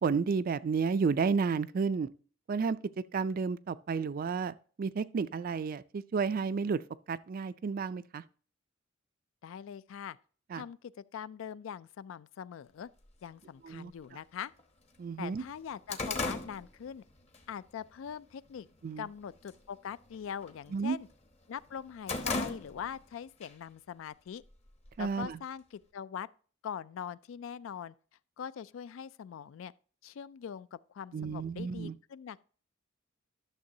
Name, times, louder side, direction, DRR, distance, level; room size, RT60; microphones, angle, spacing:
voice 1, 0.0-2.1 2.5-2.8 3.1-6.8 7.1-8.2 10.5-10.6 13.6-14.2 15.0-15.4 18.8-19.1 20.7-21.0 25.0-25.4 31.1-32.0, right 5 dB, 45° right, 0.3 m, -32 dB
voice 2, 9.4-10.2 10.5-12.9 13.2-14.5 15.2-17.0 17.5-18.7 19.0-21.1 21.5-24.4 25.0-26.3 26.6-27.9 28.4-29.7 30.0-32.4, left 8 dB, 70° left, 0.3 m, -42 dB
sound 1, 13.0-13.1 14.0-14.1 14.6-14.7 15.0-17.4 17.8-18.1 18.6-19.1 19.3-19.7 20.0-21.2 21.6-23.1 23.4-23.5 24.4-25.3, left 3 dB, 30° left, 0.9 m, -37 dB
11.5 x 6.7 x 2.7 m
head